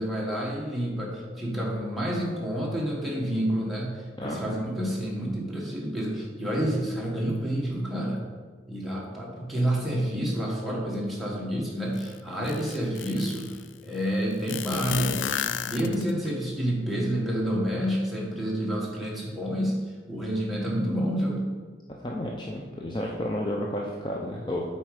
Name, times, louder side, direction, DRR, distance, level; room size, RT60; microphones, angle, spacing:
voice 1, 0.0-8.2 8.7-21.5, equal, ahead, -5 dB, 1.4 m, -29 dB
voice 2, 4.2-4.5 22.0-24.6, left 1 dB, 25° left, -2 dB, 0.5 m, -31 dB
sound 1, 12.0-12.1 12.5-13.6 14.5-16.3, left 9 dB, 85° left, 0.3 m, -31 dB
7.8 x 4.3 x 4.8 m, 1.5 s
head